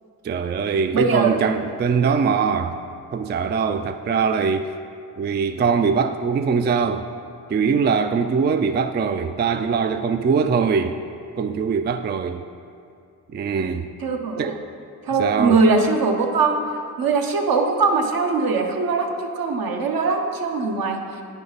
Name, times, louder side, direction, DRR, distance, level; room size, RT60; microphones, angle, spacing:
voice 1, 0.2-2.8 3.1-4.7 5.2-7.1 7.5-11.0 11.4-12.4 13.3-13.9 14.4-14.5 15.2-15.6, right 5 dB, 30° right, 9 dB, 0.4 m, -22 dB
voice 2, 0.9-1.4 14.0-14.6 15.0-16.6 17.0-21.0, right 4 dB, 65° right, 3 dB, 1.1 m, -21 dB
8.7 x 5.3 x 4.0 m, 2.5 s
supercardioid pair, 55°, 39 cm